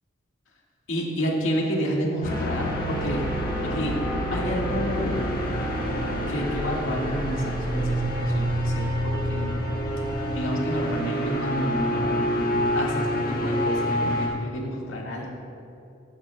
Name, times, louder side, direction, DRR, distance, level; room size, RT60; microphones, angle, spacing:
voice 1, 0.9-3.2 3.6-4.0 4.3-5.3 6.3-9.6 10.1-12.1 12.7-15.3, equal, 80° left, -2 dB, 1.7 m, -30 dB
sound 1, 2.2-14.3, equal, 45° left, 1.5 m, -27 dB
14.5 x 11.0 x 2.2 m, 2.7 s
head